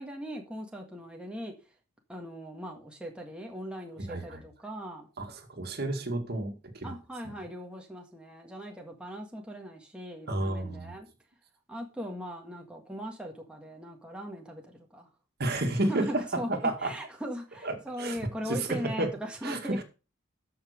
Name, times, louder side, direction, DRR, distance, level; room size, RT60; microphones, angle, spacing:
voice 1, 0.0-1.5 2.1-5.1 6.8-11.1 11.7-15.1 15.9-19.8, equal, 5° right, 1.7 m, -39 dB
voice 2, 4.0-4.4 5.2-6.9 10.3-10.9 15.4-16.1 16.5-16.9 17.6-18.2 18.4-19.1 19.4-19.8, right 2 dB, 50° right, 2.0 m, -31 dB
13.5 x 5.8 x 5.1 m
head